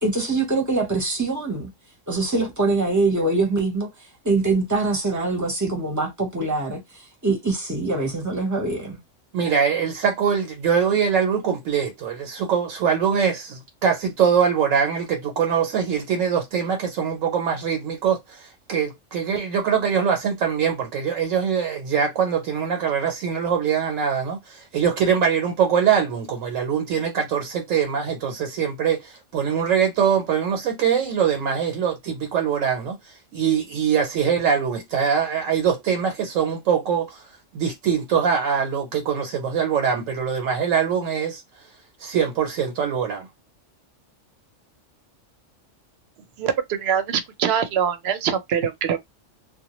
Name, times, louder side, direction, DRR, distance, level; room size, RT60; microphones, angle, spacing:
voice 1, 0.0-1.7 2.1-3.9 4.2-6.8 7.2-9.0, right 3 dB, 20° right, 0.6 m, -23 dB
voice 2, 9.3-41.4 42.0-43.3, right 7 dB, 90° right, 1.0 m, -23 dB
voice 3, 46.4-49.0, right 8 dB, 65° right, 0.7 m, -23 dB
2.2 x 2.1 x 2.9 m
omnidirectional pair, 1.3 m